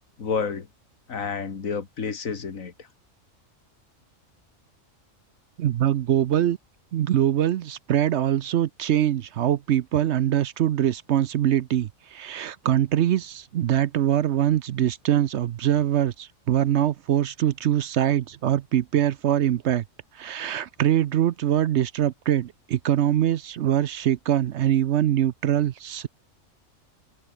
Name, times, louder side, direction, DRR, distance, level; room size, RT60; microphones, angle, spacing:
voice 1, 0.2-0.7 1.1-2.7, left 5 dB, 80° left, 2.2 m, -29 dB
voice 2, 5.6-6.6 6.9-19.8 20.1-26.1, right 11 dB, 65° right, 0.8 m, -23 dB
omnidirectional pair, 1.4 m